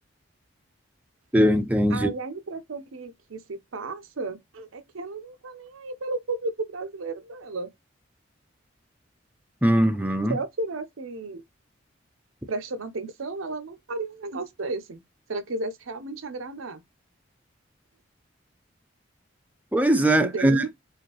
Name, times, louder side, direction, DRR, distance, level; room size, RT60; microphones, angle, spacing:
voice 1, 1.3-2.1 9.6-10.4 19.7-20.7, right 1 dB, 5° right, 0.5 m, -20 dB
voice 2, 1.9-7.7 10.3-11.4 12.5-15.0 15.3-16.8 20.2-20.7, right 3 dB, 90° right, 0.7 m, -33 dB
4.9 x 2.6 x 3.0 m
head